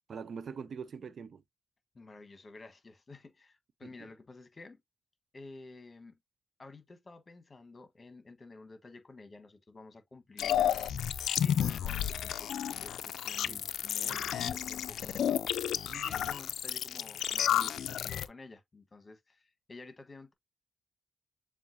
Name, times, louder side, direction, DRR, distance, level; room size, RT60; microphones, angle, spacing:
voice 1, 0.1-1.4 3.8-3.9 13.5-13.6 13.9-14.2 15.8-16.1, right 6 dB, 65° right, 0.4 m, -43 dB
voice 2, 1.9-4.8 5.3-6.1 6.6-11.1 11.4-12.5 12.8-20.3, left 3 dB, 35° left, 1.3 m, -51 dB
sound 1, 10.4-18.3, left 10 dB, 90° left, 0.3 m, -32 dB
7.1 x 2.4 x 2.7 m
cardioid pair, 75°, 0 cm